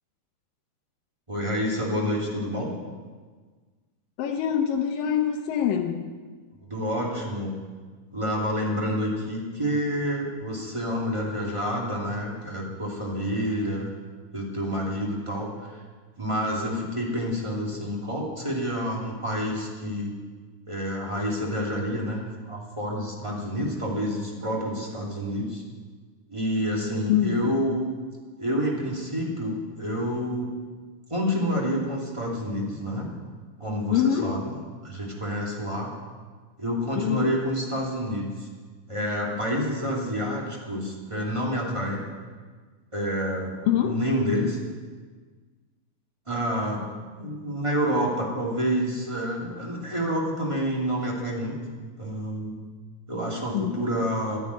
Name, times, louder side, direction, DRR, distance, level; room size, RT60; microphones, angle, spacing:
voice 1, 1.3-2.7 6.6-7.5 8.1-13.9 14.3-15.8 16.2-20.1 20.7-25.6 26.3-27.9 28.4-30.5 31.1-33.1 33.6-34.5 34.8-35.9 36.6-38.5 38.9-42.0 42.9-43.5 43.8-44.6 46.2-46.8 47.1-51.6 52.0-52.6 53.1-54.4, equal, 10° right, -3 dB, 1.7 m, -28 dB
voice 2, 4.2-6.1 27.1-27.4 33.9-34.3 36.9-37.3 43.7-44.0 53.5-53.7, left 9 dB, 70° left, 4 dB, 2.3 m, -24 dB
11.5 x 11.0 x 9.6 m, 1.5 s
omnidirectional pair, 4.7 m